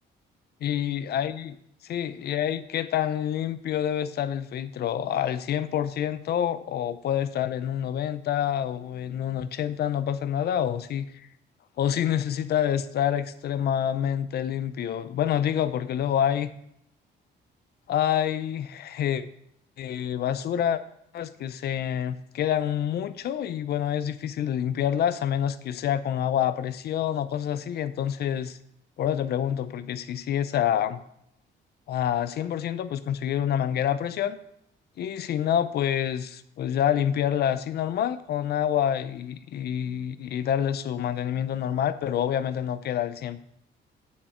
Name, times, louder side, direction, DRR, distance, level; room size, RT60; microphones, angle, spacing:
voice 1, 0.6-1.6 1.8-11.1 11.8-16.5 17.9-19.2 19.8-20.8 21.1-28.6 29.0-31.0 31.9-34.4 35.0-43.4, left 10 dB, 60° left, 14 dB, 0.6 m, -27 dB
8.8 x 7.4 x 4.4 m, 0.74 s
cardioid pair, 130°, 19 cm